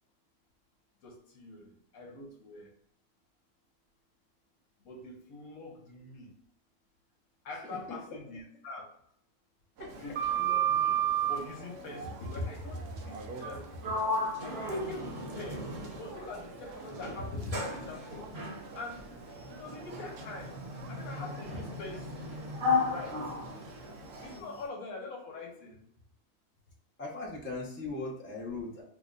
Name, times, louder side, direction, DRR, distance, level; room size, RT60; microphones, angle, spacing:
voice 1, 1.0-2.7 4.8-6.3 7.4-8.9 10.0-11.0 11.3-14.1 14.4-15.7 16.0-18.3 18.7-19.1 19.5-20.6 20.9-22.3 22.8-23.2 24.2-25.8, left 2 dB, 70° left, 1 dB, 1.2 m, -43 dB
voice 2, 7.7-8.2 9.8-9.9 13.3-13.6 24.3-24.5 27.0-28.8, left 3 dB, 15° left, -4 dB, 0.4 m, -40 dB
sound 1, 9.8-24.4, right 3 dB, 85° right, 1.1 m, -48 dB
Sliding door, 9.9-11.5 13.3-13.6 13.8-16.3 16.9-24.4, right 2 dB, 50° right, 1.0 m, -33 dB
3.2 x 2.1 x 3.7 m, 0.69 s
omnidirectional pair, 1.6 m